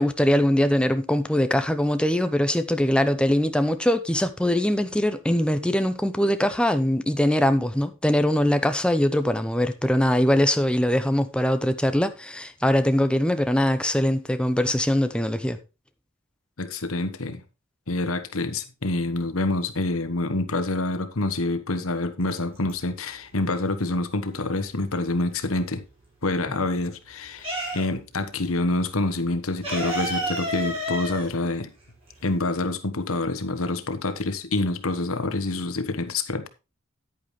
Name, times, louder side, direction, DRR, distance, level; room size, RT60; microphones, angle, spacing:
voice 1, 0.0-15.6, left 1 dB, 5° left, 0.8 m, -22 dB
voice 2, 16.6-17.4 17.9-25.8 26.2-31.7 32.2-36.5, left 2 dB, 85° left, 1.3 m, -27 dB
sound 1, 22.2-23.1 23.5-25.4 25.8-28.2 28.4-28.6 28.9-32.4, equal, 30° right, 5.7 m, -31 dB
10.5 x 8.9 x 3.2 m
head